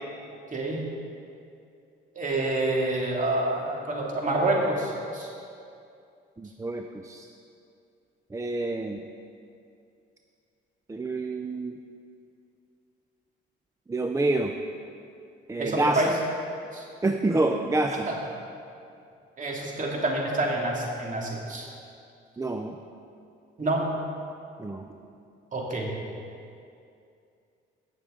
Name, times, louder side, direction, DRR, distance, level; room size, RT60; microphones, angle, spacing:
voice 1, 0.5-0.8 2.2-5.3 15.6-16.1 16.7-16.8 18.1-18.2 19.4-21.7 23.6-23.9 25.5-25.9, right 2 dB, 40° right, -2 dB, 2.3 m, -27 dB
voice 2, 6.4-7.3 8.3-9.0 10.9-11.8 13.9-14.5 15.5-16.0 17.0-18.1 22.4-22.8 24.6-24.8, right 2 dB, 15° right, 4 dB, 0.5 m, -27 dB
17.5 x 6.7 x 3.8 m, 2.5 s
cardioid pair, 90°, 20 cm